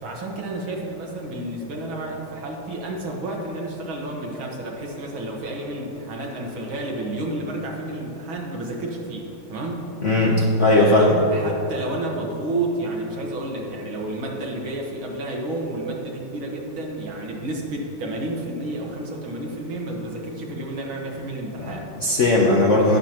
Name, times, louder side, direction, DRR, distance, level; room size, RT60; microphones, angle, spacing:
voice 1, 0.0-9.9 10.8-21.9, right 2 dB, 70° right, -1 dB, 2.2 m, -31 dB
voice 2, 10.0-11.1 21.6-23.0, left 2 dB, 50° left, -3 dB, 0.9 m, -18 dB
20.0 x 6.9 x 3.0 m, 2.8 s
omnidirectional pair, 2.3 m